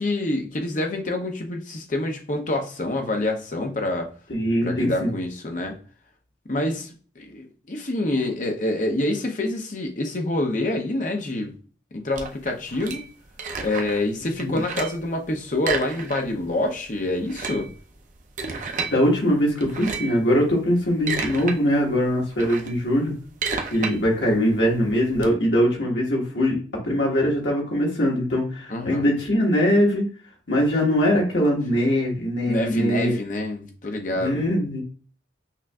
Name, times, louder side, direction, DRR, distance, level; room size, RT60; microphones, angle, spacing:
voice 1, 0.0-4.1 4.6-5.8 6.5-6.9 7.2-11.5 11.9-13.0 13.6-17.7 28.7-29.1 32.5-34.5, left 1 dB, 40° left, 3 dB, 0.7 m, -26 dB
voice 2, 4.3-5.1 14.2-14.6 18.9-23.1 23.7-26.6 26.8-30.1 30.5-33.2 34.1-34.8, equal, 70° left, -1 dB, 1.5 m, -22 dB
sound 1, 12.1-14.1 14.4-15.1 15.6-16.5 16.7-16.8 17.2-19.0 19.6-20.2 20.7-21.6 21.9-25.3, right 5 dB, 40° right, 0.5 m, -32 dB
5.8 x 2.5 x 2.3 m, 0.40 s
head